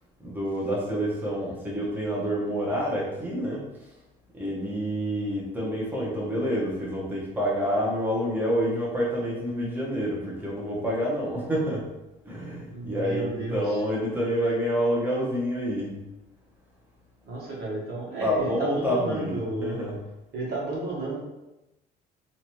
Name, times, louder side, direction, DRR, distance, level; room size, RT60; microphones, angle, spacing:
voice 1, 0.2-3.9 4.3-11.9 12.2-15.9 18.2-20.0, equal, 10° right, -5 dB, 0.8 m, -28 dB
voice 2, 12.7-13.6 17.2-19.8 20.3-21.2, right 2 dB, 70° right, -5 dB, 1.2 m, -32 dB
2.8 x 2.4 x 2.9 m, 0.95 s
cardioid pair, 110°, 17 cm